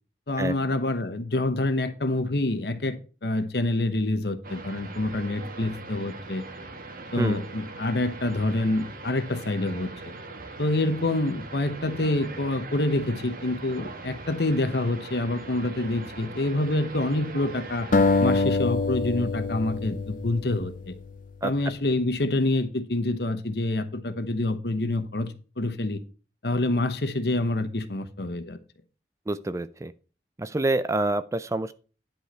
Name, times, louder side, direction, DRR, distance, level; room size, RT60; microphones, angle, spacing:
voice 1, 0.3-6.4 7.1-10.1 10.6-17.9 18.2-20.9 21.4-26.0 26.4-28.6, left 2 dB, 65° left, 1.0 m, -27 dB
sound 1, 4.4-18.4, right 3 dB, 50° right, 1.3 m, -41 dB
sound 2, 17.9-21.1, left 3 dB, 50° left, 0.5 m, -25 dB
voice 2, 29.3-29.9 30.4-31.7, right 2 dB, 15° right, 0.4 m, -27 dB
10.0 x 5.5 x 4.4 m
head